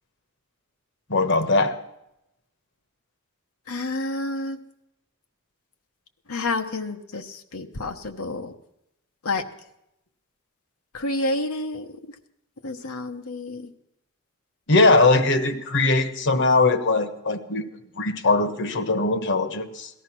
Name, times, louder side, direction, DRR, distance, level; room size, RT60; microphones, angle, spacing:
voice 1, 1.1-1.7 14.7-17.6 18.0-19.9, left 3 dB, 55° left, 10 dB, 1.3 m, -20 dB
voice 2, 3.7-4.6 6.3-8.5 9.2-9.4 10.9-11.8 12.6-13.7, left 2 dB, 75° left, 5 dB, 1.1 m, -29 dB
18.0 x 13.0 x 6.1 m, 0.85 s
head